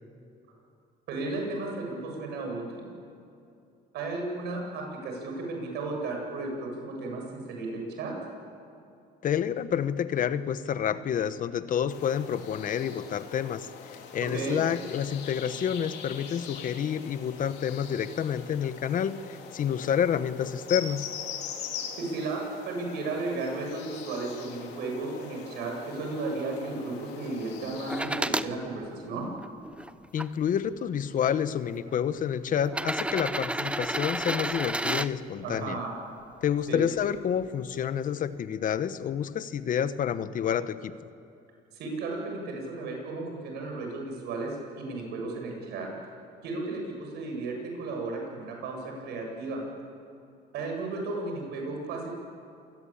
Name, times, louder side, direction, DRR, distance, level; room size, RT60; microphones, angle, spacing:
voice 1, 1.1-2.9 3.9-8.2 14.3-14.6 22.0-29.3 35.4-35.9 36.7-36.8 41.7-45.9 46.4-49.7 50.5-52.1, right 3 dB, 80° right, 1 dB, 7.6 m, -34 dB
voice 2, 9.2-21.1 30.1-35.8 36.4-40.9, left 8 dB, 50° left, 13 dB, 1.1 m, -29 dB
sound 1, 11.9-28.0, left 7 dB, 80° left, 3.6 m, -42 dB
sound 2, 27.9-28.5 29.2-30.3 31.3-31.4 32.6-35.1 37.0-37.1, right 1 dB, 5° right, 0.8 m, -30 dB
27.5 x 20.5 x 8.8 m, 2.6 s
cardioid pair, 110°, 17 cm